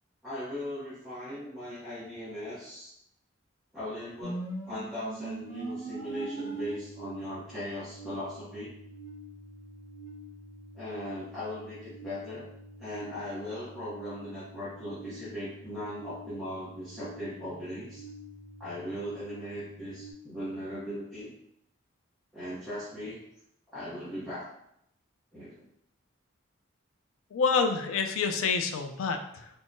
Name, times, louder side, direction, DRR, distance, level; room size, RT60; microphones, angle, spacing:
voice 1, 0.2-2.9 3.7-8.7 10.7-12.5 12.8-18.0 18.6-21.3 22.3-23.2 23.7-24.5 25.3-25.7, equal, ahead, -14 dB, 0.6 m, -38 dB
sound 1, 4.2-20.1, right 2 dB, 35° left, 0.9 m, -43 dB
voice 2, 27.3-29.5, left 5 dB, 85° left, 6 dB, 0.4 m, -28 dB
3.5 x 2.0 x 2.5 m, 0.76 s
head